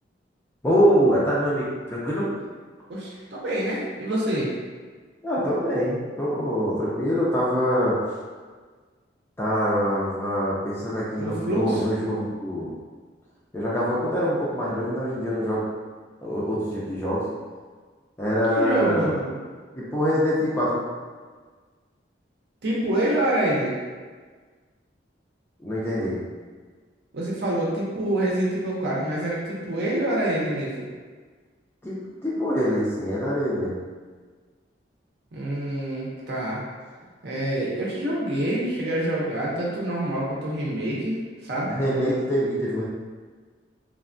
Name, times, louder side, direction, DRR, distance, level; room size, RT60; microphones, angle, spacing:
voice 1, 0.6-2.3 5.2-7.9 9.4-12.7 13.5-15.6 16.2-17.2 18.2-19.1 19.8-20.9 25.6-26.2 31.8-32.0 32.2-33.8 41.7-42.8, equal, 10° left, -7 dB, 0.4 m, -24 dB
voice 2, 2.9-4.5 11.2-11.8 18.5-19.4 22.6-23.7 27.1-30.9 35.3-36.6 37.2-41.7, right 1 dB, 60° right, -5 dB, 0.6 m, -26 dB
3.2 x 2.1 x 2.5 m, 1.5 s
head